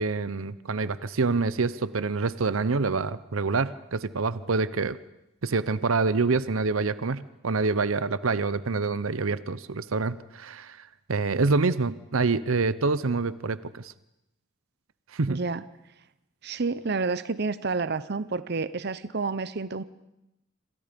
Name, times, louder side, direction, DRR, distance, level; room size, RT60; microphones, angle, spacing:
voice 1, 0.0-5.0 5.4-10.8 11.1-13.9 15.1-15.4, right 4 dB, 90° right, 16 dB, 0.8 m, -26 dB
voice 2, 15.3-15.6 16.4-19.8, right 4 dB, 55° right, 15 dB, 0.8 m, -29 dB
27.0 x 26.0 x 5.3 m, 0.88 s
head